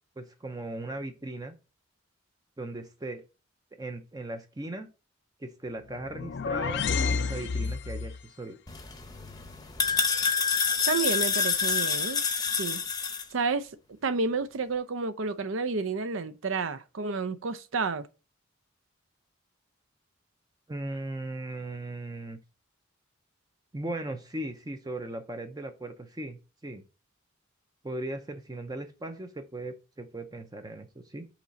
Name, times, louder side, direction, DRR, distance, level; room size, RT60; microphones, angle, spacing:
voice 1, 0.2-1.6 2.6-3.2 3.8-4.9 5.4-8.6 20.7-22.4 23.7-26.8 27.8-31.3, right 2 dB, 20° right, 0.5 m, -38 dB
sound 1, 5.9-8.2, left 5 dB, 55° left, 0.4 m, -30 dB
sound 2, 8.7-13.2, left 5 dB, 20° left, 0.7 m, -28 dB
voice 2, 10.9-12.2 12.5-12.8 13.3-13.7 14.0-18.1, right 4 dB, 75° right, 0.6 m, -30 dB
5.9 x 3.9 x 4.1 m
head